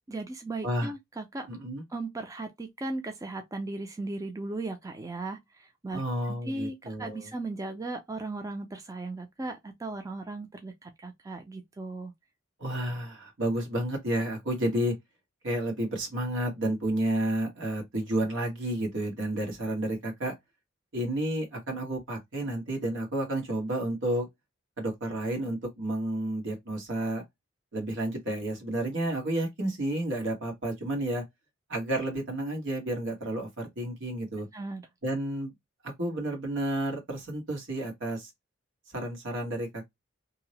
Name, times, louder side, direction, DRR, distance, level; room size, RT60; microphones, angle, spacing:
voice 1, 0.1-1.5 1.9-6.0 6.4-12.1 34.5-34.8, right 2 dB, 15° right, 0.4 m, -37 dB
voice 2, 1.5-1.8 5.9-7.3 12.6-14.9 15.4-20.3 20.9-24.3 24.8-27.2 27.7-31.2 31.7-34.5 35.0-35.5 35.8-38.3 38.9-39.9, right 1 dB, 80° right, 1.3 m, -31 dB
2.8 x 2.0 x 2.8 m
head